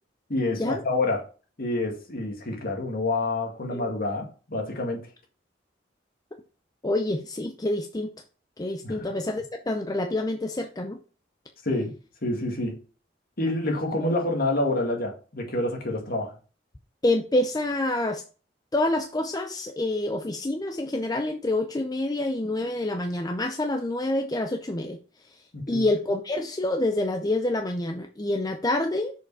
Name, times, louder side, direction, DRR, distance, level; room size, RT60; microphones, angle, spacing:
voice 1, 0.3-1.2 1.6-5.1 8.8-9.1 11.6-11.9 12.2-12.8 13.4-16.3 25.5-25.9, left 2 dB, 55° left, 2.0 m, -27 dB
voice 2, 6.8-8.1 8.6-11.0 14.0-14.1 17.0-18.2 18.7-25.0 25.7-29.1, left 1 dB, 20° left, 0.6 m, -27 dB
6.6 x 4.9 x 4.8 m
head